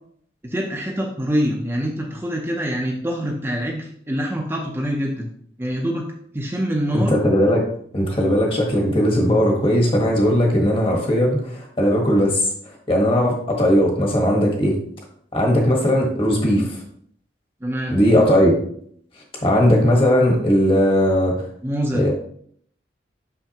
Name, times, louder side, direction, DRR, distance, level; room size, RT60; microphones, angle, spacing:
voice 1, 0.4-5.3 5.6-6.1 6.3-7.2 17.6-18.0 21.6-22.0, equal, 15° right, -1 dB, 0.6 m, -25 dB
voice 2, 6.9-7.6 7.9-12.4 12.6-14.8 15.3-16.8 17.9-18.5 19.4-21.3 21.9-22.1, equal, 30° left, 0 dB, 1.3 m, -18 dB
5.7 x 5.7 x 2.9 m, 0.63 s
head